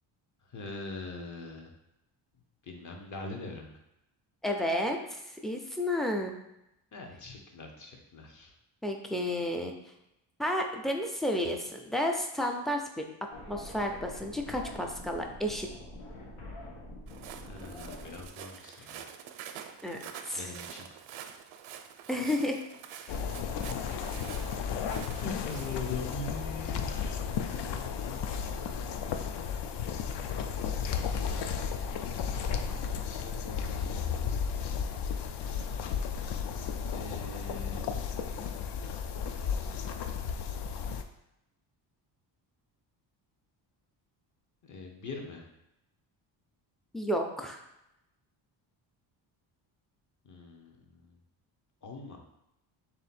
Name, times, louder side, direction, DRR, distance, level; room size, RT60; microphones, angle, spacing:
voice 1, 0.5-1.7 2.6-3.8 6.9-8.5 17.4-19.1 20.3-20.9 25.2-28.3 32.6-34.1 36.9-37.9 44.6-45.5 50.2-51.2 51.8-52.2, left 3 dB, 40° left, 2 dB, 0.8 m, -42 dB
voice 2, 4.4-6.4 8.8-9.7 10.4-13.0 13.5-15.7 19.8-20.0 20.3-20.5 22.1-22.6 46.9-47.6, left 1 dB, ahead, 2 dB, 0.3 m, -31 dB
sound 1, 13.3-18.3, left 1 dB, 85° left, 1.1 m, -45 dB
Walk footsteps, 17.1-26.1, right 8 dB, 80° right, 0.5 m, -47 dB
sound 2, 23.1-41.0, left 6 dB, 60° left, 0.5 m, -34 dB
3.4 x 2.7 x 4.2 m, 0.86 s
cardioid pair, 100°, 47 cm